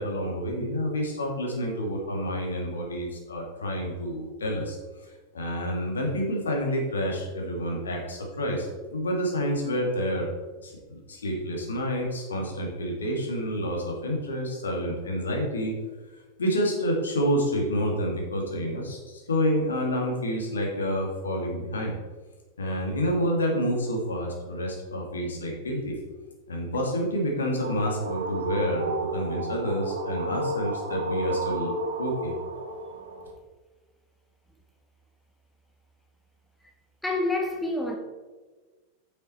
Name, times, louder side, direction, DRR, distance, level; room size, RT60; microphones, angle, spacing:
voice 1, 0.0-4.8 5.3-10.3 10.6-15.7 16.4-21.9 22.6-26.0 26.5-31.7 32.0-32.3, equal, 70° left, 2.4 m, -28 dB
sound 1, 27.2-33.3, right 2 dB, 65° right, 1.4 m, -32 dB
voice 2, 37.0-38.0, left 2 dB, 5° left, 1.3 m, -27 dB
9.2 x 6.7 x 4.4 m
figure-of-eight pair, 90°, 0 cm